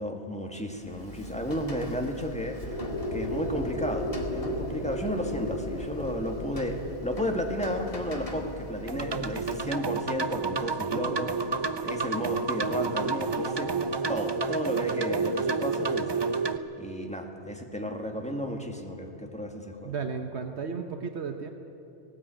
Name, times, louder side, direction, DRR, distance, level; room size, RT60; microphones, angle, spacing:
voice 1, 0.0-2.8 3.1-11.3 11.8-13.7 14.1-19.9, equal, 5° left, 3 dB, 1.9 m, -33 dB
Rain, 0.7-10.0, left 1 dB, 30° left, 2.2 m, -42 dB
sound 1, 2.6-10.4, equal, 70° left, 5.1 m, -36 dB
sound 2, 8.9-16.6, right 4 dB, 30° right, 0.6 m, -30 dB
voice 2, 10.9-11.3 19.8-21.5, right 5 dB, 70° right, 6 dB, 1.3 m, -34 dB
18.5 x 18.5 x 9.0 m, 2.8 s
omnidirectional pair, 1.2 m